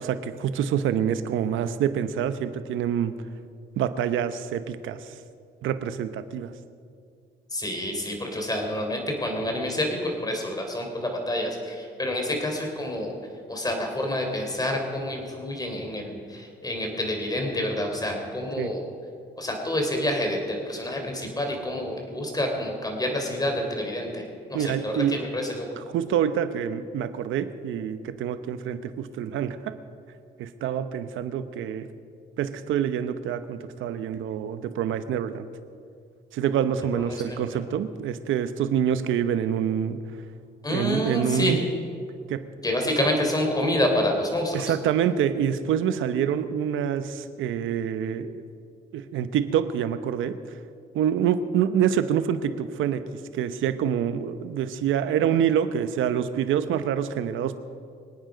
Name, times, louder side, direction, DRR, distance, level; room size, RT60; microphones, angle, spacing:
voice 1, 0.0-3.1 3.8-5.1 5.6-6.5 18.6-18.7 24.5-25.2 25.8-29.8 30.4-31.9 32.4-35.5 36.3-40.0 40.7-41.6 42.3-42.5 43.0-43.1 44.5-48.4 48.9-50.4 50.9-53.0 53.3-57.6, right 9 dB, 80° right, 11 dB, 0.9 m, -26 dB
voice 2, 7.5-13.1 13.5-18.9 19.4-24.2 24.5-25.7 36.9-37.6 40.6-41.6 42.6-44.7, left 1 dB, 20° left, 2 dB, 3.6 m, -28 dB
24.5 x 9.2 x 5.1 m, 2.3 s
cardioid pair, 90°, 20 cm